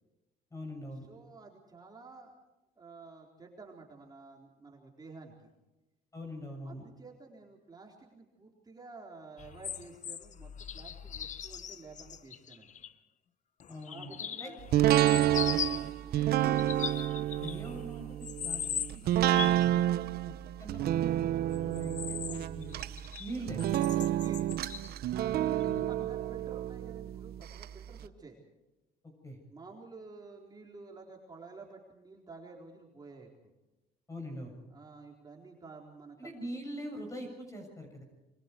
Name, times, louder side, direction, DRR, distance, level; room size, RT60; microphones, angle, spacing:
voice 1, 0.5-1.0 6.1-6.9 13.7-14.5 16.2-16.7 17.2-18.7 20.3-22.8 23.2-23.7 25.7-25.9 29.2-29.4 34.1-34.6 36.2-38.0, equal, 20° left, 2 dB, 7.4 m, -43 dB
voice 2, 1.1-2.4 2.8-5.5 6.6-12.7 13.9-15.5 24.2-24.6 25.1-28.4 29.5-33.5 34.7-36.3, right 3 dB, 25° right, -1 dB, 4.1 m, -51 dB
sound 1, 9.4-12.9 13.6-15.9 16.5-17.8 18.2-19.7 21.5-23.3 23.6-24.9 25.6-25.7, left 9 dB, 45° left, 1.0 m, -40 dB
sound 2, 14.7-27.7 28.0-28.1, right 13 dB, 65° right, 0.9 m, -29 dB
27.5 x 24.5 x 4.7 m, 1.0 s
cardioid pair, 110°, 17 cm